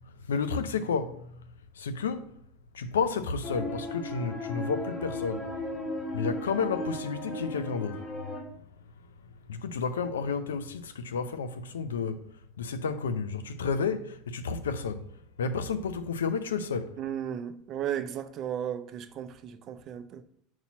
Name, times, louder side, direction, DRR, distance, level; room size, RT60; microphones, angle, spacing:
voice 1, 0.0-1.5 1.7-2.3 2.7-5.5 6.1-8.4 9.5-12.2 12.6-15.1 15.4-16.9, left 5 dB, 90° left, 0.4 m, -31 dB
sound 1, 3.4-8.4, left 1 dB, 35° left, 1.6 m, -36 dB
voice 2, 17.0-20.2, right 9 dB, 50° right, 0.5 m, -35 dB
4.3 x 4.2 x 5.7 m
hypercardioid pair, 90°, 0 cm